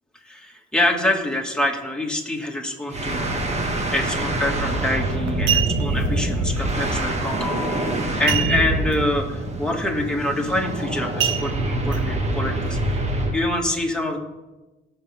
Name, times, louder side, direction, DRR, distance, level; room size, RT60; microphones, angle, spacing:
voice 1, 0.2-13.0 13.3-14.2, left 1 dB, 5° left, -1 dB, 2.3 m, -26 dB
sound 1, 2.9-13.4, right 1 dB, 35° right, 1.9 m, -25 dB
sound 2, 4.6-4.8 5.3-6.1 8.3-8.9 9.3-9.4 9.8-10.1 11.2-12.0 12.6-12.7, right 10 dB, 80° right, 1.0 m, -25 dB
18.0 x 6.6 x 3.6 m, 1.1 s
cardioid pair, 90°, 20 cm